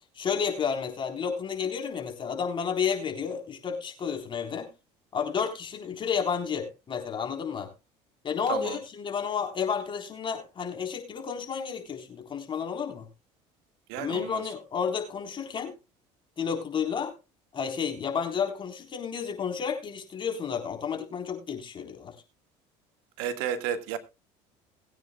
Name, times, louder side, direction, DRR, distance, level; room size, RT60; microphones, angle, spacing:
voice 1, 0.2-4.7 5.1-7.7 8.2-13.0 14.0-15.7 16.4-17.1 17.5-22.1, left 6 dB, 35° left, 3 dB, 4.0 m, -31 dB
voice 2, 13.9-14.4 23.2-24.0, right 9 dB, 85° right, 8 dB, 1.7 m, -32 dB
21.0 x 9.3 x 2.3 m, 0.26 s
supercardioid pair, 105°, 14 cm